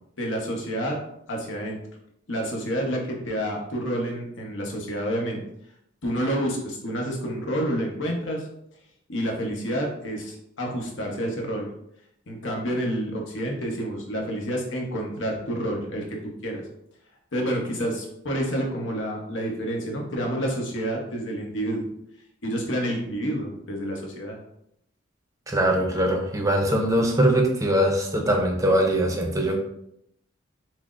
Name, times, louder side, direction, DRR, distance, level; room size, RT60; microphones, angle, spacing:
voice 1, 0.2-1.0 1.3-1.8 2.3-5.4 6.0-8.5 9.1-11.6 12.3-16.2 16.4-16.6 17.3-21.8 22.4-24.4, equal, 75° left, 0 dB, 0.8 m, -29 dB
voice 2, 25.5-29.6, right 1 dB, 15° right, 1 dB, 0.5 m, -22 dB
5.8 x 2.0 x 2.4 m, 0.76 s
head